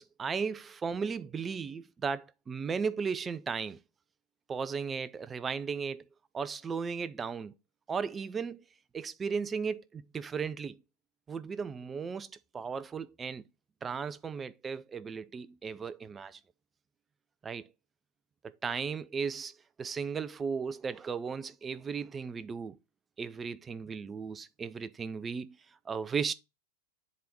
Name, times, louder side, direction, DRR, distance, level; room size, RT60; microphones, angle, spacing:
voice 1, 0.0-3.8 4.5-6.0 6.3-7.5 7.9-8.6 8.9-10.8 11.3-13.4 13.8-16.4 17.4-17.7 18.4-22.8 23.2-25.6 25.9-26.3, right 5 dB, 20° right, 0.4 m, -36 dB
7.4 x 3.5 x 4.3 m
figure-of-eight pair, 90°, 0 cm